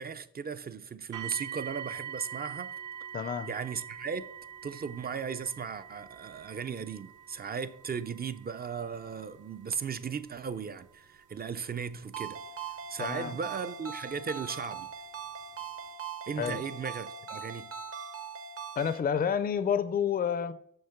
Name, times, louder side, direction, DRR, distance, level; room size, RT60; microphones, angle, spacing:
voice 1, 0.0-2.7 3.5-4.3 4.6-12.4 12.9-14.9 16.3-17.7, right 6 dB, 30° right, 0.4 m, -36 dB
sound 1, 1.1-14.0 14.8-14.9 15.5-15.6, right 8 dB, 80° right, 1.0 m, -45 dB
voice 2, 3.1-3.5 13.0-13.4 16.4-16.6 18.8-20.5, left 7 dB, 30° left, 0.4 m, -29 dB
Ringtone, 12.1-19.0, right 6 dB, 50° right, 0.8 m, -41 dB
6.6 x 6.5 x 5.8 m
wide cardioid pair, 175°, 30 cm